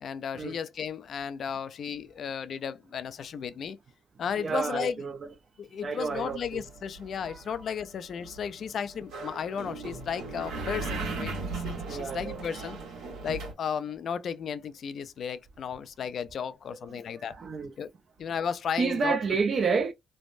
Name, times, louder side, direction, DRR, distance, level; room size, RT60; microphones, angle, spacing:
voice 1, 0.0-3.8 4.2-5.0 5.6-12.8 13.2-17.4 17.8-17.9 18.2-19.2, left 7 dB, 60° left, 0.4 m, -34 dB
voice 2, 4.4-5.2 5.8-6.6 7.3-7.6 11.9-12.4 17.1-17.7 18.8-19.9, right 5 dB, 45° right, 0.5 m, -30 dB
sound 1, 6.1-13.5, right 3 dB, 85° right, 1.1 m, -38 dB
3.2 x 2.1 x 2.5 m
cardioid pair, 90°, 0 cm